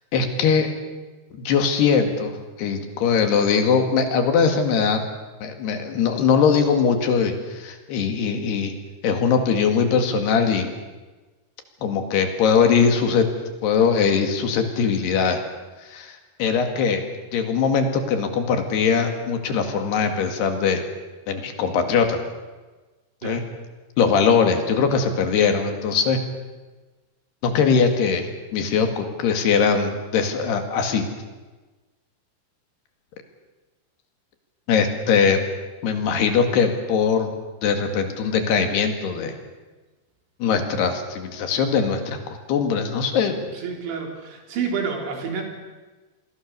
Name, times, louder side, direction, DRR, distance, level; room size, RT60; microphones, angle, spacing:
voice 1, 0.1-0.7 1.3-5.0 5.4-8.7 9.0-10.8 11.8-13.3 13.6-15.4 15.9-17.0 17.3-20.8 21.3-22.2 23.2-23.4 24.0-26.2 27.4-31.0 34.7-35.4 35.8-37.3 37.6-39.4 40.4-42.2 42.5-43.5, left 6 dB, 70° left, 6 dB, 4.1 m, -21 dB
voice 2, 43.5-45.4, right 6 dB, 90° right, 2 dB, 5.8 m, -29 dB
28.0 x 21.5 x 6.8 m, 1.2 s
omnidirectional pair, 5.1 m